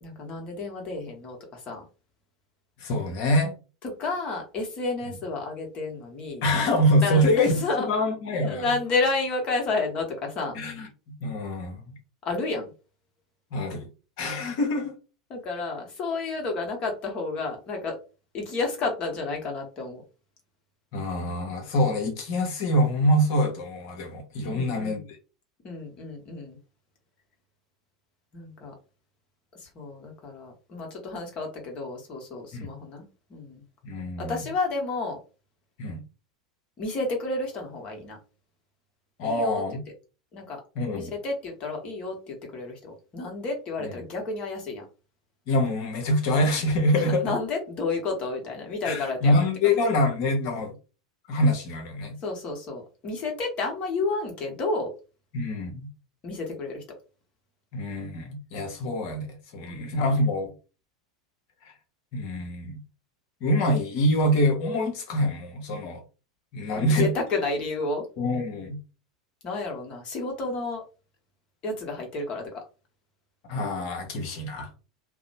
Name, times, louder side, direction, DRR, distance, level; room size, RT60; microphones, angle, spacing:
voice 1, 0.0-1.8 4.0-6.4 7.0-7.9 8.4-10.6 12.2-12.7 15.3-18.0 18.3-20.0 24.5-25.0 25.6-26.6 28.3-28.7 29.6-33.0 33.3-33.6 34.2-35.2 36.8-38.2 39.2-39.6 40.3-40.6 40.9-44.9 46.9-49.4 52.2-54.9 56.2-56.8 59.6-60.1 66.7-68.1 69.4-70.8 71.6-72.6, left 3 dB, 40° left, 1.1 m, -31 dB
voice 2, 2.8-3.6 6.4-8.7 10.5-12.0 13.5-13.9 14.2-15.0 20.9-25.0 32.5-32.7 33.8-34.4 35.8-36.0 39.2-39.8 40.7-41.1 43.8-43.9 45.5-47.3 48.8-50.7 51.3-52.2 55.3-55.9 57.7-60.5 61.6-61.7 62.1-62.8 63.4-66.0 66.5-67.1 68.2-68.8 73.4-74.7, left 1 dB, 55° left, 0.9 m, -25 dB
2.6 x 2.0 x 2.7 m
figure-of-eight pair, 85°, 3 cm